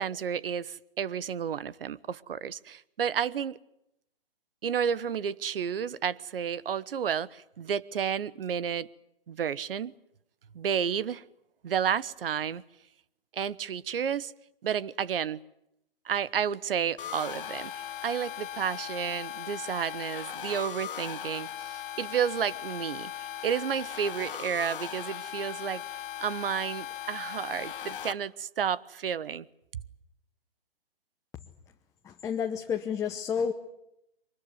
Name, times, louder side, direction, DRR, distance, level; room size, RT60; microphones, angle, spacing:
voice 1, 0.0-3.6 4.6-8.9 9.3-9.9 10.5-11.2 11.6-12.6 13.3-14.3 14.6-15.4 16.0-23.1 23.4-25.8 26.2-29.4 29.7-29.8, right 8 dB, 65° right, 1.1 m, -31 dB
sound 1, 17.0-28.1, left 11 dB, 60° left, 1.5 m, -38 dB
voice 2, 32.0-33.5, left 7 dB, 10° left, 0.9 m, -30 dB
23.5 x 20.5 x 9.4 m
hypercardioid pair, 140°, 30 cm